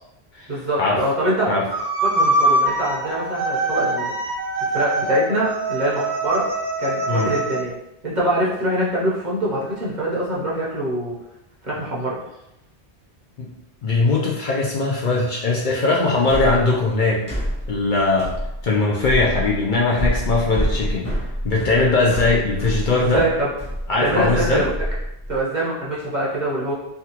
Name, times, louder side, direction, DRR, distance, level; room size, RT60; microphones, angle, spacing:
voice 1, 0.5-1.5 2.0-4.1 4.6-6.5 6.8-7.7 8.0-11.2 11.6-12.2 22.9-23.5 24.0-24.7 25.3-26.7, right 1 dB, 45° right, -6 dB, 0.9 m, -24 dB
sound 1, 1.7-7.6, right 2 dB, 85° right, 1.0 m, -23 dB
voice 2, 13.8-17.2 17.7-18.3 18.6-21.1 21.4-23.2 23.9-24.6, left 3 dB, 55° left, -4 dB, 0.6 m, -20 dB
sound 2, 16.3-25.4, equal, 20° left, 0.8 m, -27 dB
3.5 x 2.3 x 2.9 m, 0.89 s
omnidirectional pair, 1.1 m